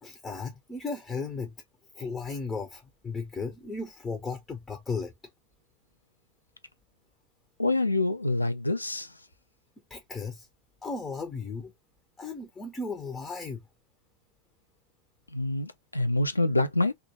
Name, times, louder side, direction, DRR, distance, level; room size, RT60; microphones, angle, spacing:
voice 1, 0.0-1.6 1.9-5.1 9.9-10.5 10.8-11.7 12.2-13.6, left 4 dB, 15° left, 0.5 m, -35 dB
voice 2, 7.6-9.1 15.3-16.9, left 2 dB, 85° left, 0.3 m, -26 dB
2.1 x 2.1 x 2.8 m
figure-of-eight pair, 90°, 0 cm